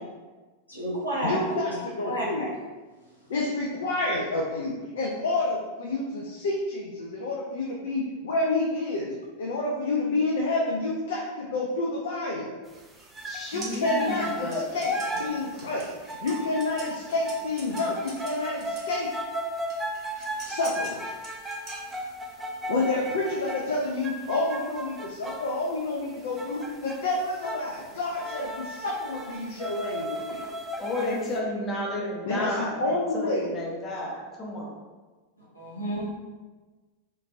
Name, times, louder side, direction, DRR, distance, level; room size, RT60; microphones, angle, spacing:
voice 1, 0.7-1.5 2.0-2.5 35.5-36.1, right 1 dB, 85° left, -8 dB, 1.0 m, -30 dB
voice 2, 1.2-2.5 3.3-12.5 13.5-19.1 20.4-21.0 22.7-30.4 32.3-33.5, left 2 dB, 60° left, -2 dB, 0.4 m, -29 dB
sound 1, 12.7-19.0 19.7-22.3, right 2 dB, 30° right, 0.9 m, -45 dB
sound 2, 13.1-13.5 13.8-25.6 26.4-27.0 27.3-27.8 28.1-31.3, right 1 dB, 10° right, 0.3 m, -35 dB
voice 3, 13.3-14.7 30.8-34.7, left 1 dB, 25° left, -3 dB, 0.6 m, -32 dB
2.9 x 2.5 x 2.6 m, 1.3 s
figure-of-eight pair, 90°, 0 cm